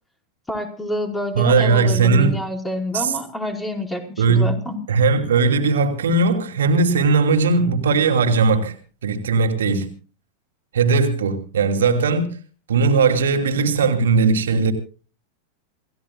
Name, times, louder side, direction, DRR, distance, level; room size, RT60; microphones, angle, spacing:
voice 1, 0.5-4.8, left 1 dB, 10° left, 4.9 m, -27 dB
voice 2, 1.4-2.3 2.9-3.1 4.2-4.5 4.9-8.7 9.0-9.9 10.7-12.3 12.7-14.7, right 4 dB, 65° right, 2.9 m, -18 dB
28.5 x 16.5 x 2.4 m
figure-of-eight pair, 90°, 0 cm